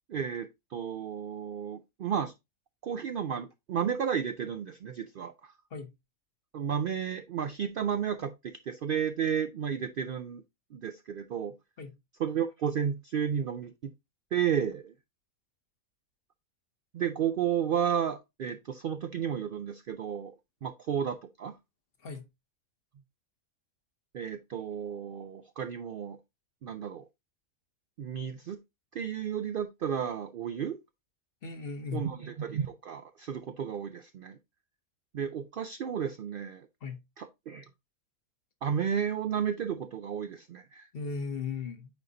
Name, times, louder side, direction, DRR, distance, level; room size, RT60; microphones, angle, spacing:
voice 1, 0.1-2.3 2.8-5.5 6.5-10.4 10.7-11.5 12.2-13.9 14.3-14.9 16.9-20.3 20.6-21.6 24.1-26.2 26.6-27.1 28.0-28.6 28.9-30.8 31.9-34.4 35.1-36.7 37.2-37.7 38.6-40.9, right 8 dB, 85° right, 0.4 m, -32 dB
voice 2, 31.4-32.0 36.8-37.0 40.9-41.9, left 5 dB, 45° left, 1.1 m, -36 dB
9.1 x 3.9 x 2.7 m
omnidirectional pair, 1.5 m